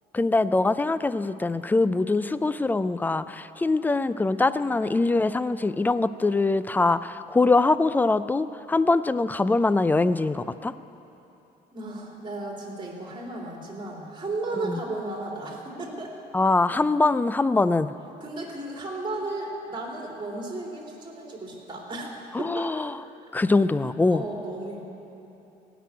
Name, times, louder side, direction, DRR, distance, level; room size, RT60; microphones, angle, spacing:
voice 1, 0.1-10.7 14.6-14.8 16.3-17.9 22.3-23.0 23.3-24.2, left 3 dB, 10° left, 14 dB, 0.3 m, -23 dB
voice 2, 11.7-16.2 18.2-22.1 22.4-22.7 24.1-24.8, right 2 dB, 30° right, -1 dB, 2.8 m, -34 dB
16.5 x 6.1 x 9.4 m, 2.9 s
cardioid pair, 110°, 17 cm